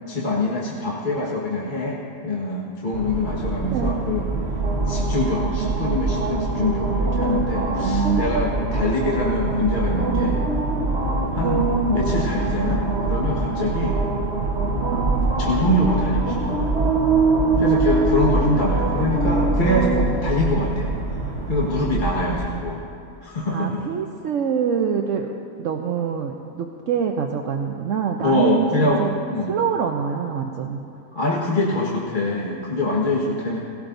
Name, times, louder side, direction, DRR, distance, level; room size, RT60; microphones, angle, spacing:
voice 1, 0.1-4.3 4.9-10.4 11.3-13.9 15.4-16.7 17.6-20.9 21.5-22.9 23.2-23.8 28.2-29.5 31.1-33.6, left 2 dB, 35° left, -5 dB, 1.6 m, -24 dB
sound 1, 2.9-22.4, right 3 dB, 50° right, 1.4 m, -23 dB
voice 2, 3.7-4.0 7.7-8.3 12.1-12.2 13.8-14.0 14.9-15.2 17.4-17.9 22.2-22.7 23.5-25.3 25.6-29.2 29.5-30.8, right 7 dB, 65° right, 2 dB, 1.0 m, -26 dB
19.0 x 17.0 x 2.6 m, 2.6 s
omnidirectional pair, 1.5 m